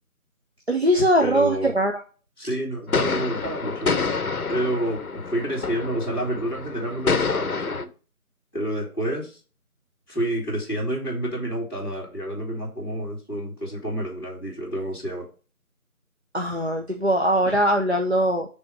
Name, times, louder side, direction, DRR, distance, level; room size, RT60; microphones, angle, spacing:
voice 1, 0.7-2.0 16.3-18.5, right 1 dB, 45° right, 2 dB, 0.6 m, -21 dB
voice 2, 1.2-1.7 2.4-3.9 4.5-7.9 8.5-9.4 10.1-15.3, right 1 dB, 15° left, -6 dB, 2.0 m, -29 dB
sound 1, 2.9-7.8, left 4 dB, 70° left, 0.7 m, -27 dB
5.2 x 3.5 x 5.6 m, 0.36 s
figure-of-eight pair, 170°, 45 cm